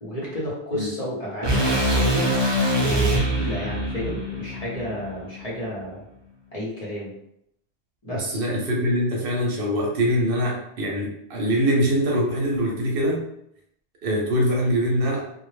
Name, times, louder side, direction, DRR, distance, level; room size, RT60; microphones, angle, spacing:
voice 1, 0.0-2.3 2.7-6.0 6.5-7.1 8.0-8.4, equal, 40° left, -6 dB, 0.8 m, -31 dB
sound 1, 1.4-5.6, right 1 dB, 40° right, 0.4 m, -24 dB
voice 2, 8.1-13.2 14.0-15.3, equal, 65° right, -2 dB, 0.7 m, -23 dB
2.1 x 2.0 x 3.1 m, 0.76 s
omnidirectional pair, 1.1 m